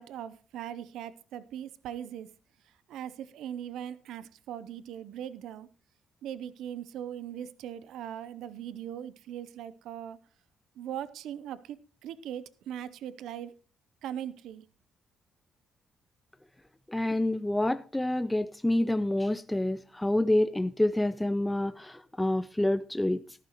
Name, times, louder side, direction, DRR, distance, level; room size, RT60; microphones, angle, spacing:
voice 1, 0.0-2.3 2.9-5.7 6.2-10.2 10.8-13.5 14.0-14.7, right 10 dB, 85° right, 0.6 m, -40 dB
voice 2, 16.9-23.2, left 1 dB, 10° left, 0.5 m, -27 dB
13.5 x 11.5 x 3.0 m
cardioid pair, 90°, 0 cm